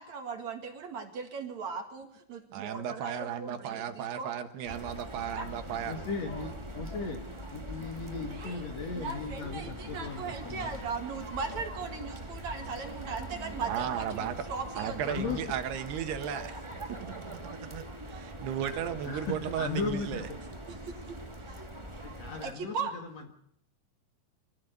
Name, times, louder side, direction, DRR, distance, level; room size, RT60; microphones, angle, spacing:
voice 1, 0.0-4.3 5.3-5.5 8.3-8.6 8.9-15.1 20.7-21.2 21.5-21.7 22.4-22.9, right 5 dB, 50° right, 5 dB, 2.7 m, -38 dB
voice 2, 2.5-6.0 13.7-14.4 14.8-16.6 16.9-17.4 17.7-20.3, right 9 dB, 75° right, 8 dB, 3.3 m, -35 dB
sound 1, 4.6-22.5, right 1 dB, 30° right, 0.5 m, -42 dB
voice 3, 5.9-7.2 7.5-10.7 15.1-15.4 18.6-18.7 19.0-20.4 22.0-23.3, left 4 dB, 50° left, 4 dB, 2.4 m, -37 dB
25.0 x 16.0 x 8.0 m, 0.72 s
omnidirectional pair, 4.8 m